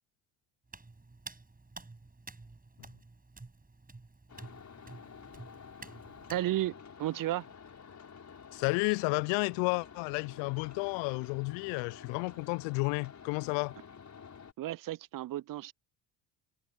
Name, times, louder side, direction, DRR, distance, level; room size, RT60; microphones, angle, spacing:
Hands, 0.7-6.4, right 3 dB, 15° right, 7.6 m, -50 dB
sound 1, 4.3-14.5, left 6 dB, 35° left, 5.5 m, -51 dB
voice 1, 6.3-7.5 14.6-15.7, right 14 dB, 45° right, 0.7 m, -33 dB
voice 2, 8.5-13.7, left 32 dB, 65° left, 0.7 m, -32 dB
hypercardioid pair, 55°, 48 cm